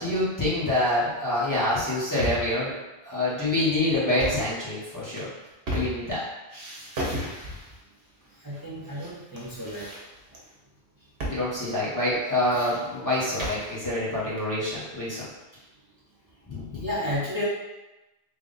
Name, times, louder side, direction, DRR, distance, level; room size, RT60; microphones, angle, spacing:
voice 1, 0.0-2.7 3.0-5.3 5.7-6.2 11.3-15.3 16.5-16.9, left 1 dB, 20° left, -10 dB, 1.0 m, -26 dB
sound 1, 2.2-2.6 4.0-4.5 5.0-6.2 6.5-7.8 8.5-9.1 9.4-10.4 11.2-11.4 11.7-11.8 12.2-13.7, equal, 70° right, 1.1 m, -34 dB
voice 2, 8.4-9.9 16.8-17.4, left 1 dB, 25° right, -10 dB, 0.7 m, -32 dB
3.5 x 2.4 x 3.8 m, 1.0 s
omnidirectional pair, 1.1 m